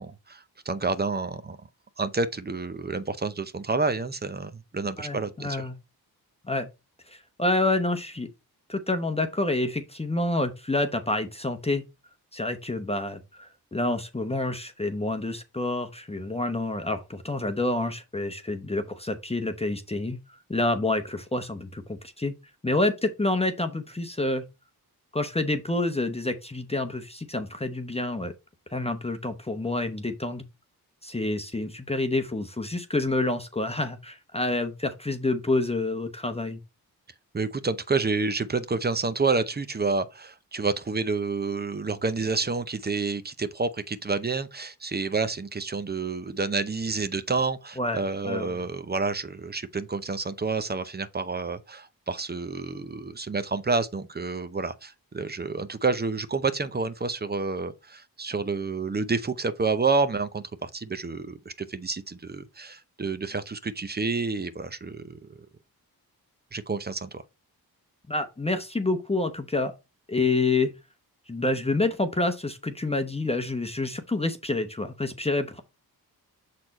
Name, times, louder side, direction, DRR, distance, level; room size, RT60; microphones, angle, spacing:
voice 1, 0.0-1.6 2.0-5.7 37.3-65.2 66.5-67.2, right 4 dB, 25° right, 0.7 m, -29 dB
voice 2, 5.0-5.7 6.4-6.7 7.1-8.3 8.7-11.8 12.3-20.2 20.5-22.3 22.6-24.4 25.1-28.3 28.7-30.4 31.0-36.6 47.8-48.6 68.1-69.7 70.1-70.7 71.3-75.6, left 2 dB, 15° left, 0.9 m, -28 dB
6.5 x 4.2 x 4.1 m
cardioid pair, 65°, 38 cm